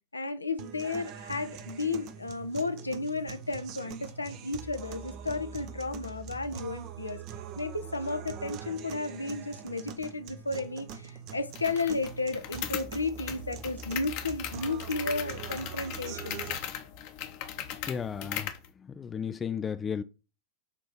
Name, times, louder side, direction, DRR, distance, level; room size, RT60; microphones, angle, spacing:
voice 1, 0.1-7.2 7.6-16.4, left 3 dB, 80° left, 0.6 m, -33 dB
sound 1, 0.6-16.6, right 7 dB, 40° right, 0.7 m, -43 dB
sound 2, 11.6-18.7, left 10 dB, 45° left, 0.9 m, -38 dB
voice 2, 17.9-18.5 19.0-20.0, left 7 dB, 20° left, 0.3 m, -33 dB
6.8 x 2.9 x 5.5 m
figure-of-eight pair, 90°, 0 cm